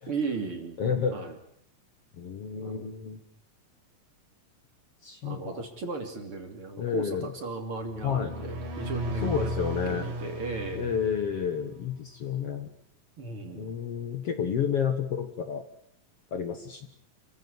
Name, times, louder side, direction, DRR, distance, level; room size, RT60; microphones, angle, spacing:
voice 1, 0.1-0.8 1.1-1.3 2.6-2.9 5.2-11.0 13.2-13.7, right 3 dB, 40° right, 5 dB, 3.5 m, -36 dB
voice 2, 0.8-1.2 2.1-3.2 5.0-5.6 6.8-7.3 8.0-8.3 9.2-10.1 10.8-12.7 13.6-15.6 16.3-16.9, left 7 dB, 50° left, 7 dB, 2.3 m, -30 dB
sound 1, 7.9-11.7, equal, 85° right, 5.9 m, -35 dB
27.5 x 15.5 x 9.8 m, 0.69 s
omnidirectional pair, 3.9 m